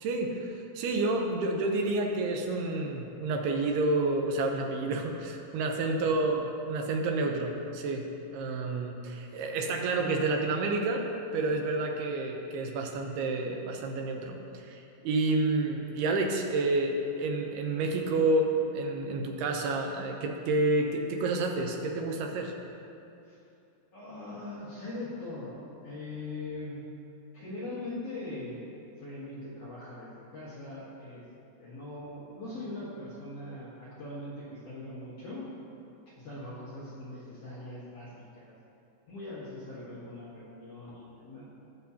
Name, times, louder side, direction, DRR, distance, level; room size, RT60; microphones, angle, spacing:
voice 1, 0.0-8.0 8.3-11.1 11.3-22.5, right 2 dB, 75° right, 2 dB, 2.5 m, -29 dB
voice 2, 23.9-26.8 27.3-28.6 29.0-31.2 31.6-35.4 36.2-38.5 39.1-41.4, left 2 dB, 55° left, -10 dB, 1.8 m, -41 dB
19.0 x 6.5 x 2.8 m, 2.7 s
omnidirectional pair, 5.1 m